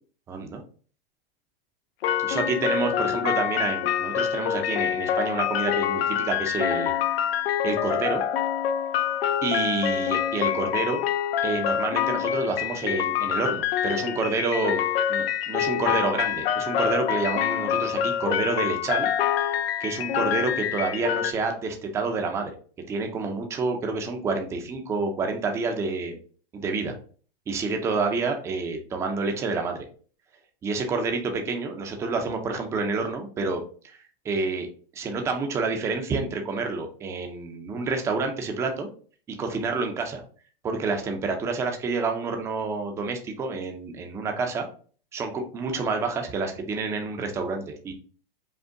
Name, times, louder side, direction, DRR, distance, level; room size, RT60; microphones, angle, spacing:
voice 1, 0.3-0.6 2.2-6.9 7.6-8.2 9.4-11.0 11.4-19.1 19.4-19.5 19.8-22.5 22.9-26.2 26.5-26.9 27.5-29.9 30.6-34.0 34.2-34.7 34.9-38.9 39.3-40.2 40.6-44.7 45.1-47.9, right 4 dB, 10° right, 4 dB, 0.4 m, -28 dB
sound 1, 2.0-21.3, left 9 dB, 75° left, 0.6 m, -26 dB
5.2 x 2.1 x 3.6 m, 0.41 s
supercardioid pair, 150°, 30 cm